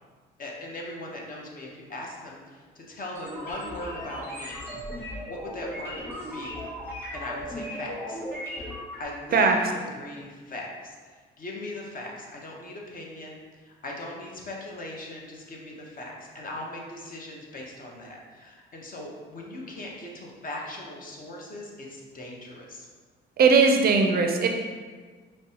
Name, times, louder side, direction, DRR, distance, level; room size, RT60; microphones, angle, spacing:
voice 1, 0.4-4.6 5.2-6.0 6.3-6.6 7.1-8.2 9.0-22.9, left 1 dB, 45° left, -1 dB, 0.8 m, -39 dB
sound 1, 3.1-9.0, equal, 10° left, 1.4 m, -37 dB
voice 2, 23.4-24.5, right 4 dB, 50° right, 3 dB, 0.4 m, -19 dB
5.2 x 2.1 x 2.8 m, 1.5 s
cardioid pair, 90°, 20 cm